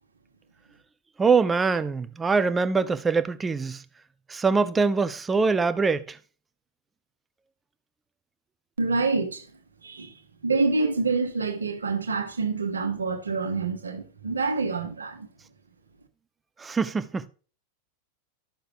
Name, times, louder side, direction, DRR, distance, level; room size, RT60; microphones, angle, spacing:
voice 1, 1.2-3.8 4.3-6.2 16.6-17.3, right 4 dB, 15° right, 0.6 m, -23 dB
voice 2, 8.8-9.5 9.8-10.1 10.4-15.3, right 4 dB, 75° right, 1.3 m, -27 dB
13.0 x 6.5 x 2.9 m
figure-of-eight pair, 90°, 0 cm